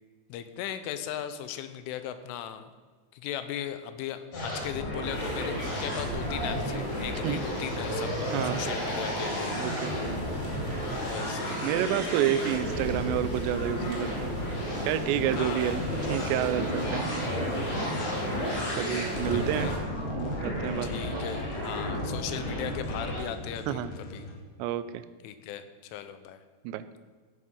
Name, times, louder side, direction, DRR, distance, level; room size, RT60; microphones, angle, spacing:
voice 1, 0.3-2.7 3.1-9.5 9.9-10.2 11.0-11.6 15.3-15.6 17.9-18.5 19.3-19.8 20.8-23.8 24.1-24.2 25.2-25.6 25.9-26.4, left 10 dB, 85° left, 10 dB, 3.3 m, -38 dB
sound 1, 4.3-23.2, equal, 45° left, 4.5 m, -33 dB
sound 2, 5.0-19.8, equal, 25° left, 1.5 m, -35 dB
voice 2, 8.3-8.6 9.6-10.0 11.6-14.3 14.8-15.8 16.1-17.1 18.7-19.7 20.2-21.2 23.7-23.9 24.6-25.1 26.6-26.8, right 11 dB, 80° right, 13 dB, 2.6 m, -29 dB
sound 3, 19.3-24.4, left 1 dB, 60° left, 2.6 m, -42 dB
15.0 x 8.6 x 5.5 m, 1.5 s
omnidirectional pair, 5.6 m